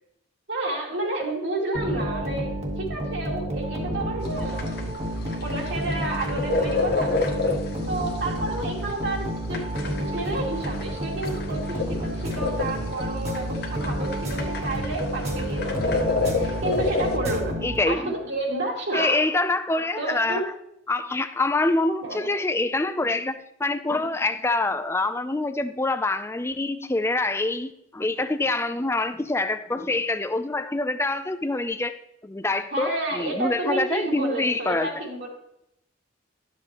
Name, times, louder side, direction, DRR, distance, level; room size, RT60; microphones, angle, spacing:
voice 1, 0.5-2.5 2.8-5.0 5.4-7.2 7.9-9.6 10.1-17.5 17.9-19.2 19.7-20.4 22.0-22.2 32.7-35.3, right 2 dB, 60° right, -2 dB, 2.3 m, -30 dB
sound 1, 1.7-18.2, equal, 35° right, 1.4 m, -30 dB
sound 2, 4.3-17.2, left 3 dB, 50° left, 1.0 m, -29 dB
voice 2, 17.6-18.1 18.9-20.5 20.9-32.0 32.2-34.9, left 2 dB, 15° left, 10 dB, 0.4 m, -25 dB
11.5 x 7.6 x 2.9 m, 0.79 s
head